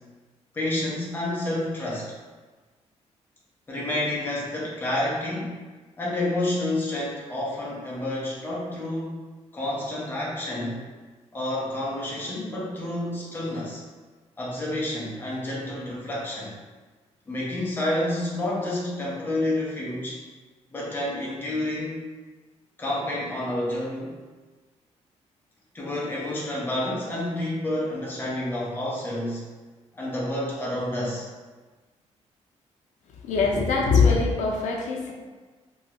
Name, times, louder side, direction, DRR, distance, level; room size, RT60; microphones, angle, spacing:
voice 1, 0.5-2.1 3.7-5.5 6.0-9.2 9.5-10.8 11.3-13.8 14.4-16.5 17.3-20.2 20.7-22.0 22.8-24.1 25.7-29.4 29.9-31.3, left 1 dB, 15° left, -5 dB, 0.6 m, -29 dB
voice 2, 33.2-35.1, left 4 dB, 85° left, 0 dB, 0.5 m, -22 dB
2.9 x 2.3 x 2.8 m, 1.3 s
cardioid pair, 175°, 12 cm